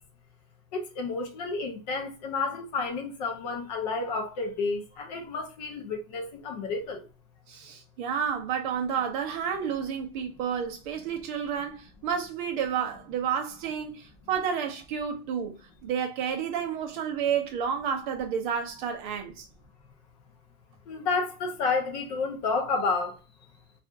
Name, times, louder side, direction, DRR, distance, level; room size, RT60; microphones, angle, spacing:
voice 1, 0.7-7.0 20.9-23.1, left 4 dB, 30° left, 0.5 m, -30 dB
voice 2, 7.5-19.5, right 7 dB, 35° right, 0.5 m, -30 dB
2.7 x 2.4 x 2.2 m
supercardioid pair, 170°, 44 cm